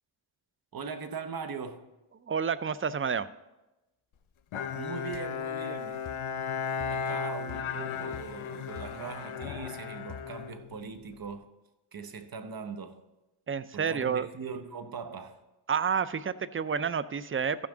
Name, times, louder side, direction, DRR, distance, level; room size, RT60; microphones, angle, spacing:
voice 1, 0.7-1.9 4.7-6.0 6.9-11.5 11.9-13.0 13.7-15.4, right 5 dB, 45° right, 0.9 m, -40 dB
voice 2, 2.3-3.3 13.5-14.3 15.7-17.7, right 6 dB, 25° right, 0.5 m, -29 dB
Bowed string instrument, 4.5-11.2, left 6 dB, 75° left, 0.8 m, -35 dB
sound 1, 5.1-5.3 6.0-6.3 6.8-7.1 7.5-7.8 8.1-8.4 8.8-9.8 10.1-10.5, left 9 dB, 45° left, 0.5 m, -47 dB
14.5 x 6.0 x 3.8 m
cardioid pair, 50°, 49 cm